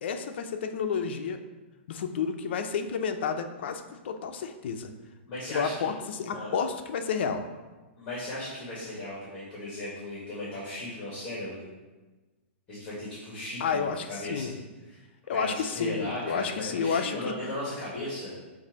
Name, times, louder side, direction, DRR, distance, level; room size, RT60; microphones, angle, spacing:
voice 1, 0.0-1.4 1.9-4.9 5.5-7.4 13.6-14.5 15.3-17.3, left 6 dB, 60° left, 7 dB, 0.6 m, -30 dB
voice 2, 5.3-5.9 6.3-6.5 8.0-11.6 12.7-14.6 14.9-15.0 15.3-18.3, left 1 dB, 20° left, -7 dB, 1.7 m, -36 dB
7.0 x 2.7 x 5.2 m, 1.2 s
hypercardioid pair, 160°, 7 cm